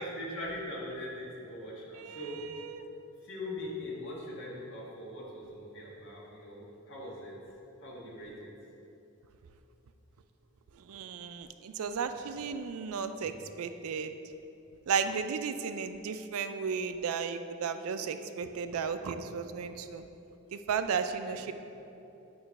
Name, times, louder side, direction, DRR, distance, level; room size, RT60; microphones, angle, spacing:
voice 1, 0.0-2.4 3.2-7.3 7.8-8.5 21.3-21.4, left 1 dB, 55° left, -5 dB, 1.6 m, -41 dB
voice 2, 2.0-2.8 10.9-14.1 14.9-20.0 20.5-21.5, right 6 dB, 70° right, 9 dB, 0.4 m, -34 dB
8.7 x 3.1 x 5.8 m, 2.9 s
head